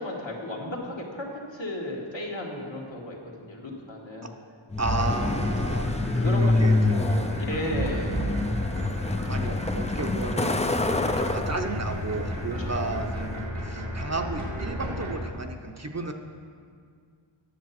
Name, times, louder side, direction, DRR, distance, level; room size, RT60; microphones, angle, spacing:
voice 1, 0.0-4.3 6.1-8.2 9.5-9.6 11.0-11.3 12.6-12.8, left 1 dB, 65° left, -2 dB, 1.9 m, -35 dB
Truck, 4.7-13.4, left 2 dB, 15° left, 0.4 m, -27 dB
voice 2, 4.8-5.9 6.4-7.1 9.3-10.6 11.2-16.1, right 3 dB, 35° right, 4 dB, 0.8 m, -33 dB
sound 1, 4.8-15.2, right 1 dB, 90° right, 2.3 m, -34 dB
10.5 x 6.9 x 5.9 m, 2.1 s
wide cardioid pair, 50°, 48 cm